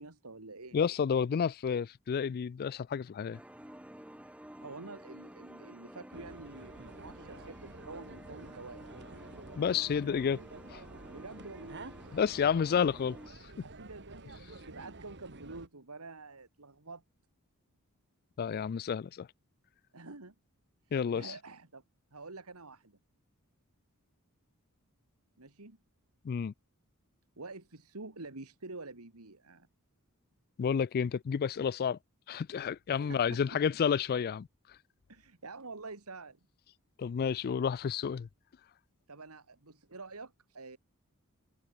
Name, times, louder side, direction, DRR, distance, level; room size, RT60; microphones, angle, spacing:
voice 1, 0.0-0.8 4.6-8.8 11.1-12.4 13.6-17.0 19.9-20.3 20.8-21.8 22.1-23.0 25.4-25.8 27.4-29.7 32.9-33.4 35.1-36.4 39.1-40.8, right 3 dB, 80° right, 2.3 m, -48 dB
voice 2, 0.7-3.4 9.6-10.4 10.7-10.8 12.1-13.2 18.4-19.3 20.9-21.3 26.2-26.5 30.6-32.0 32.3-34.5 37.0-38.3, left 7 dB, 45° left, 0.3 m, -30 dB
sound 1, 3.3-13.3, equal, 5° right, 2.8 m, -52 dB
sound 2, 6.1-15.7, right 2 dB, 50° right, 2.0 m, -50 dB
head